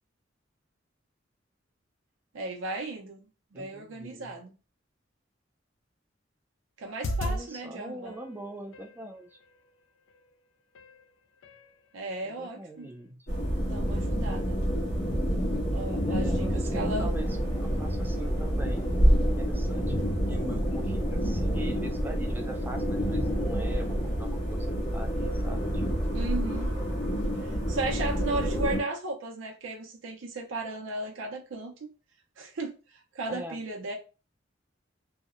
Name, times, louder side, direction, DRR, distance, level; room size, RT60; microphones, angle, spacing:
voice 1, 2.3-4.5 6.8-8.2 11.9-12.9 13.6-14.6 15.4-17.1 26.1-26.8 27.4-31.7 32.4-33.9, right 2 dB, 85° right, 0.5 m, -35 dB
voice 2, 3.5-4.4 7.2-9.4 12.2-13.2 16.0-26.2 33.3-33.6, right 1 dB, 10° right, 0.3 m, -43 dB
sound 1, 6.9-7.4 8.1-9.0 10.1-10.2 10.7-11.0 11.4-11.7 12.1-12.2, equal, 90° left, 0.4 m, -34 dB
sound 2, 13.3-28.8, equal, 70° left, 1.1 m, -28 dB
sound 3, 16.2-24.2, equal, 25° left, 0.7 m, -47 dB
2.7 x 2.0 x 2.3 m
head